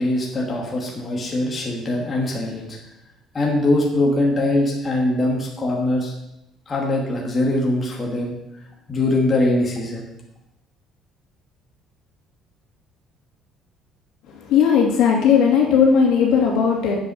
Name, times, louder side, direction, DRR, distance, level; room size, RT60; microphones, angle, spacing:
voice 1, 0.0-2.8 3.3-6.1 6.7-8.4 8.9-10.0, left 2 dB, 25° left, -2 dB, 2.6 m, -22 dB
voice 2, 14.4-17.0, left 7 dB, 70° left, -1 dB, 2.8 m, -17 dB
9.4 x 8.1 x 6.5 m, 0.86 s
cardioid pair, 145°, 0 cm